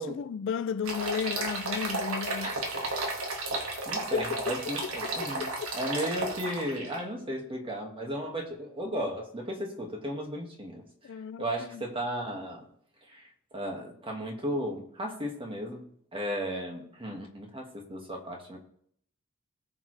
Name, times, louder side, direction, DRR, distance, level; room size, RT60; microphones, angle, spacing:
voice 1, 0.0-2.5 4.1-5.8 11.0-11.9, left 7 dB, 60° left, 0.3 m, -34 dB
sound 1, 0.8-7.0, right 2 dB, 75° right, 1.9 m, -33 dB
voice 2, 3.9-10.8 11.4-12.6 13.1-15.8 16.1-18.6, equal, 25° right, 1.9 m, -35 dB
18.5 x 6.7 x 3.3 m
head